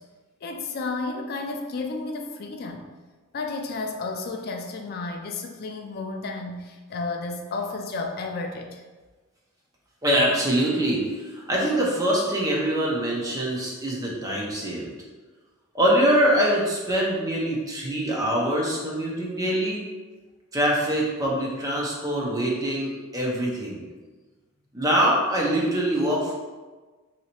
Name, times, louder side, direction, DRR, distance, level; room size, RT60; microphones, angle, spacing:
voice 1, 0.4-2.9 3.3-8.8, left 3 dB, 45° left, 3 dB, 0.3 m, -32 dB
voice 2, 10.0-14.9 15.7-19.8 20.5-23.8 24.7-26.3, right 1 dB, 15° right, -3 dB, 0.6 m, -24 dB
3.1 x 2.8 x 2.9 m, 1.3 s
head